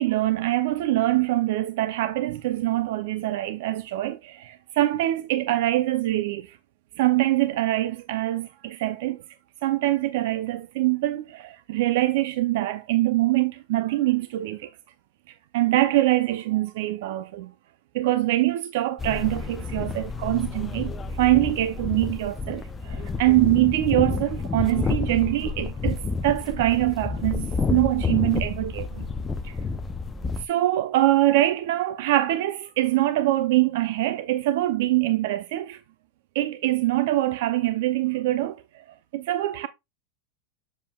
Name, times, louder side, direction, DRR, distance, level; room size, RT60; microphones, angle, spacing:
voice 1, 0.0-6.6 7.0-9.2 9.6-14.7 15.5-17.5 17.9-29.1 29.4-29.6 30.4-35.8 36.3-39.7, right 16 dB, 60° right, 0.5 m, -24 dB
sound 1, 19.0-30.4, left 4 dB, 15° left, 0.5 m, -30 dB
7.5 x 7.1 x 2.3 m
supercardioid pair, 165°, 0 cm